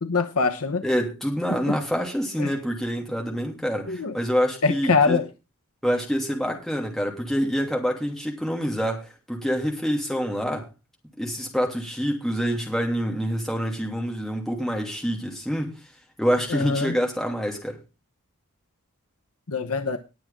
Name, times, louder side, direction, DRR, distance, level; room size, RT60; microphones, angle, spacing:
voice 1, 0.0-0.8 1.7-1.8 2.4-2.5 3.9-4.1 4.6-5.3 16.5-16.9 19.5-20.0, left 4 dB, 90° left, 7 dB, 1.0 m, -23 dB
voice 2, 0.8-5.2 5.8-10.7 11.2-15.7 16.2-17.8, equal, ahead, 0 dB, 2.9 m, -26 dB
19.5 x 7.4 x 3.7 m, 0.28 s
head